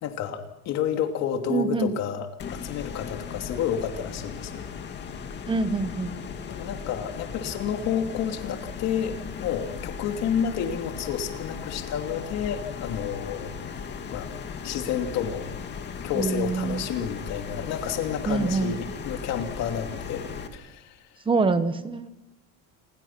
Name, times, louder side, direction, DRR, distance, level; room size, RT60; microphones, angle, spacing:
voice 1, 0.0-4.7 6.5-13.5 14.1-14.3 14.6-15.5 16.0-21.0, left 8 dB, 50° left, 5 dB, 2.9 m, -30 dB
voice 2, 1.5-1.9 5.5-6.1 16.1-16.8 18.3-18.7 21.3-22.1, right 4 dB, 15° right, 11 dB, 1.1 m, -25 dB
sound 1, 2.4-20.5, left 6 dB, 30° left, 2.2 m, -37 dB
28.5 x 21.5 x 6.0 m, 0.92 s
cardioid pair, 165°, 33 cm